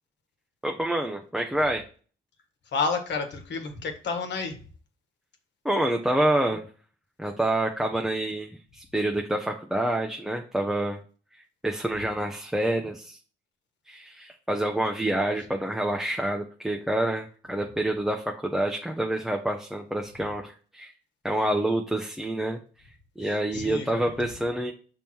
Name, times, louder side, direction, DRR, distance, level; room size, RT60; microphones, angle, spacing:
voice 1, 0.6-1.8 5.6-6.6 7.2-11.0 11.6-13.2 13.9-20.9 21.2-22.6 23.2-24.7, right 1 dB, ahead, 2 dB, 0.7 m, -27 dB
voice 2, 2.7-4.6 23.5-24.0, left 4 dB, 65° left, 5 dB, 1.5 m, -30 dB
6.0 x 3.6 x 4.4 m, 0.39 s
cardioid pair, 90°, 20 cm